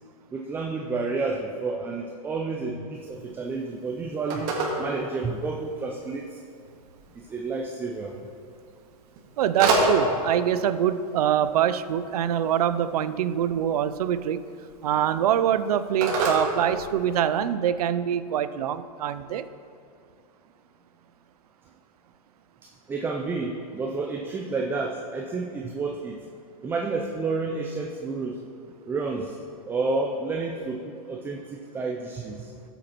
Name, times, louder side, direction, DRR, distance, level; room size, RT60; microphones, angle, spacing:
voice 1, 0.3-6.4 7.1-8.2 22.6-26.2 26.6-28.4 28.9-29.4 29.7-32.5, right 3 dB, 10° right, 0 dB, 0.4 m, -30 dB
Telephone, 2.9-17.4, right 2 dB, 40° right, 1.9 m, -32 dB
voice 2, 9.4-14.4 14.8-19.5, right 10 dB, 75° right, 14 dB, 0.5 m, -24 dB
13.5 x 8.0 x 3.0 m, 2.4 s
hypercardioid pair, 135°, 20 cm